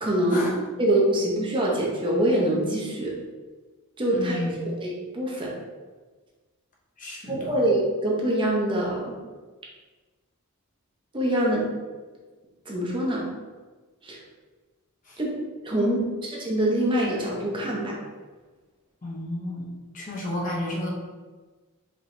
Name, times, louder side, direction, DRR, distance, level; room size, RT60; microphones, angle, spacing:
voice 1, 0.0-0.5 0.8-3.1 4.0-5.5 7.3-9.2 11.1-11.7 12.7-13.3 14.0-14.2 15.2-18.0, right 1 dB, 25° right, -3 dB, 0.8 m, -25 dB
voice 2, 4.1-4.5 7.0-7.5 15.1-15.2 15.8-16.1 19.0-20.9, left 1 dB, 40° left, -3 dB, 0.8 m, -32 dB
5.1 x 2.9 x 3.1 m, 1.3 s
head